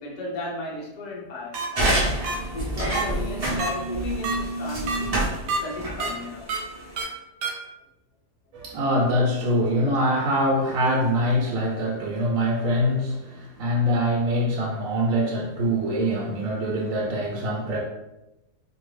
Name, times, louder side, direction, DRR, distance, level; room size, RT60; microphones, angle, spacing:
voice 1, 0.0-1.9 2.5-6.5, left 2 dB, 55° left, -3 dB, 0.4 m, -35 dB
sound 1, 1.5-1.7 2.2-2.4 2.9-3.0 3.6-3.7 4.2-4.3 4.9-5.0 5.5-5.6 6.0-6.1 6.5-6.6 7.0-7.1 7.4-7.5, right 4 dB, 85° right, 1.2 m, -27 dB
sound 2, 1.7-7.0, right 1 dB, 45° right, 0.4 m, -27 dB
voice 2, 8.5-17.8, equal, 65° right, -3 dB, 0.9 m, -24 dB
2.6 x 2.5 x 3.2 m, 0.94 s
omnidirectional pair, 1.7 m